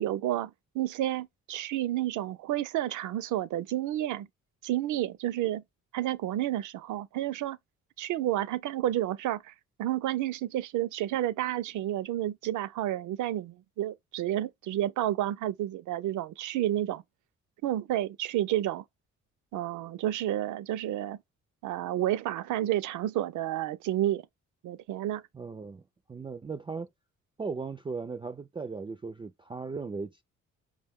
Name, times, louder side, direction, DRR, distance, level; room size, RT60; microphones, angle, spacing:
voice 1, 0.0-4.3 4.6-5.6 5.9-7.6 8.0-9.5 9.8-17.0 17.6-18.8 19.5-21.2 21.6-24.2 24.6-25.2, right 13 dB, 70° right, 0.5 m, -30 dB
voice 2, 25.3-25.8 26.1-26.9 27.4-30.2, right 4 dB, 15° right, 0.3 m, -37 dB
4.9 x 2.2 x 3.5 m
cardioid pair, 85°, 31 cm